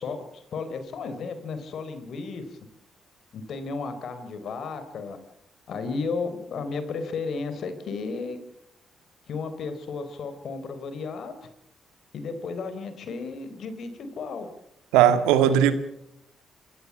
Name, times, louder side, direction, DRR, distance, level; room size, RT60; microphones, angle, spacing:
voice 1, 0.0-2.6 3.3-5.2 5.7-8.4 9.3-11.5 12.1-14.5 15.5-15.7, left 4 dB, 65° left, 10 dB, 3.8 m, -33 dB
voice 2, 14.9-15.7, right 10 dB, 85° right, 10 dB, 1.8 m, -18 dB
27.0 x 14.5 x 7.2 m, 0.80 s
hypercardioid pair, 45°, 0 cm